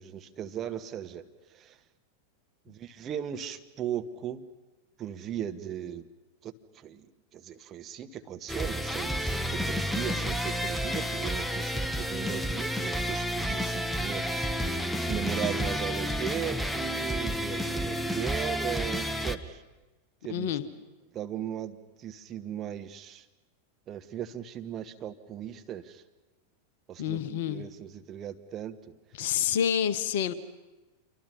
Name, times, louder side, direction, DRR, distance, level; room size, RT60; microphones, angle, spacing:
voice 1, 0.0-1.8 2.7-4.5 5.0-6.1 6.4-14.3 14.6-19.6 20.2-20.5 21.1-23.3 23.9-26.0 26.9-28.9 29.2-29.3, right 10 dB, 30° right, 7 dB, 1.2 m, -38 dB
sound 1, 8.5-19.4, equal, 5° left, 1.0 m, -30 dB
voice 2, 20.3-20.6 27.0-27.7 29.2-30.3, left 9 dB, 55° left, 14 dB, 1.1 m, -28 dB
27.0 x 24.5 x 5.6 m, 1.1 s
figure-of-eight pair, 90°, 0 cm